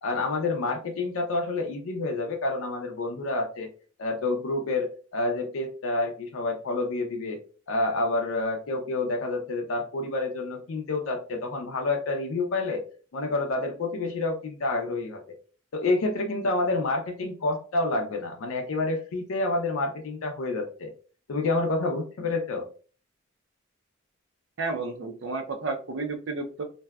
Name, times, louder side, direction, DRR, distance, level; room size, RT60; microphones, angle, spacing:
voice 1, 0.0-3.7 4.0-7.4 7.7-12.8 13.1-15.2 15.7-20.9 21.3-22.6, left 2 dB, 90° left, 3 dB, 0.4 m, -28 dB
voice 2, 24.6-26.6, right 3 dB, 70° right, 5 dB, 0.5 m, -32 dB
2.6 x 2.2 x 2.2 m, 0.39 s
head